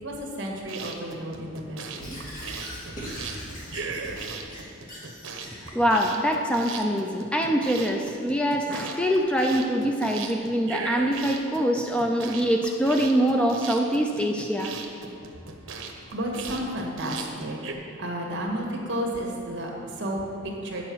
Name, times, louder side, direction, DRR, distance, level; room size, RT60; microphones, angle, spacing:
voice 1, 0.0-2.2 15.4-20.8, equal, 60° right, 0 dB, 1.7 m, -32 dB
sound 1, 0.6-17.7, right 5 dB, 80° right, 1.0 m, -38 dB
Squeak / Writing, 2.0-5.8, equal, 40° left, 2.9 m, -40 dB
voice 2, 5.6-14.7, equal, 5° left, 2 dB, 0.4 m, -24 dB
9.3 x 6.9 x 6.2 m, 2.5 s
head